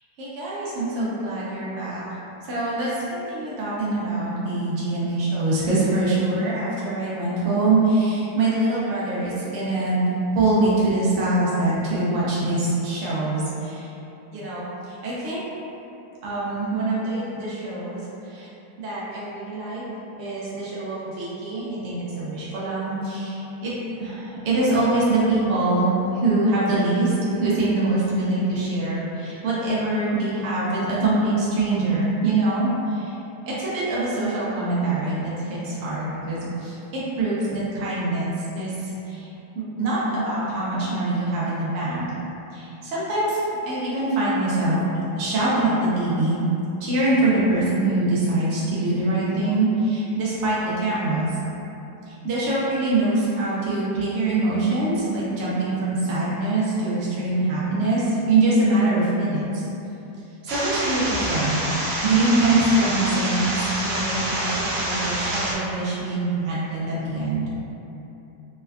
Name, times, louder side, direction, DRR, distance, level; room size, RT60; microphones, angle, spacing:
voice 1, 0.2-2.2 2.5-10.0 10.3-13.9 14.3-15.4 16.2-18.5 18.8-19.8 20.2-23.7 24.0-27.1 27.4-33.1 33.5-38.3 38.6-39.3 39.5-42.0 42.5-44.8 45.2-46.4 46.8-51.3 52.1-59.6 60.4-67.4, right 2 dB, 70° right, -8 dB, 0.7 m, -24 dB
sound 1, 60.5-65.6, right 1 dB, 85° right, 1.2 m, -27 dB
3.3 x 2.1 x 2.3 m, 2.9 s
omnidirectional pair, 1.8 m